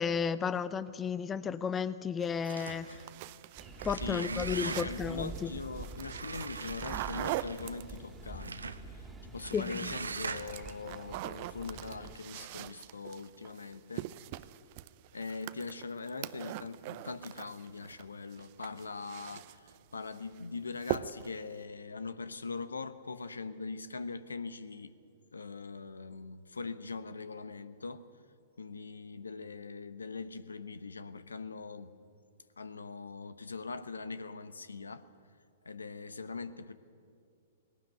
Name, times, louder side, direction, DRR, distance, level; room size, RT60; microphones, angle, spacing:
voice 1, 0.0-3.0 3.8-5.5 9.5-9.9, left 6 dB, 20° left, 16 dB, 0.6 m, -33 dB
sound 1, 2.2-8.3 9.4-9.8 10.1-18.0 18.3-19.8 20.1-20.4 20.8-21.4, right 16 dB, 45° right, 0.6 m, -42 dB
sound 2, 2.4-3.1 3.7-5.1 6.0-7.7 8.4-8.8 9.4-10.7, right 4 dB, 85° right, 1.0 m, -41 dB
sound 3, 3.6-12.2, right 2 dB, 15° right, 2.3 m, -46 dB
voice 2, 4.0-14.1 15.1-24.9 25.3-28.0 28.6-32.0 32.6-35.0 35.6-36.7, left 4 dB, 85° left, 14 dB, 1.0 m, -42 dB
18.5 x 18.0 x 9.0 m, 2.4 s
figure-of-eight pair, 115°, 0 cm